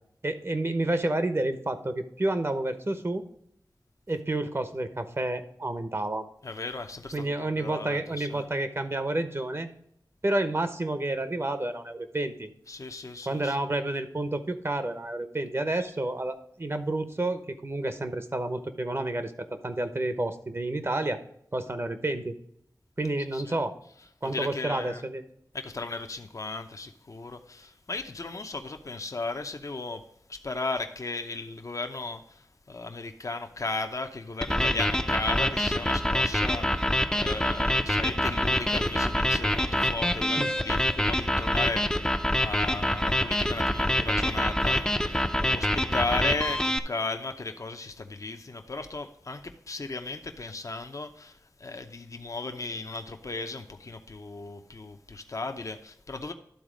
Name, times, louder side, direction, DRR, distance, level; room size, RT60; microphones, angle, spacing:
voice 1, 0.2-3.2 4.1-6.2 7.1-9.7 10.2-12.5 13.3-21.2 21.5-22.3 23.0-23.8 24.2-25.2 40.4-40.5, right 2 dB, 40° right, 9 dB, 0.8 m, -30 dB
voice 2, 6.4-8.5 12.7-13.6 15.8-15.9 23.3-23.6 24.2-25.0 25.5-30.0 30.3-42.0 42.4-56.3, left 3 dB, 50° left, 6 dB, 0.7 m, -36 dB
sound 1, 34.4-46.8, left 1 dB, 10° left, 0.5 m, -26 dB
12.0 x 4.0 x 5.1 m, 0.72 s
wide cardioid pair, 75°, 7 cm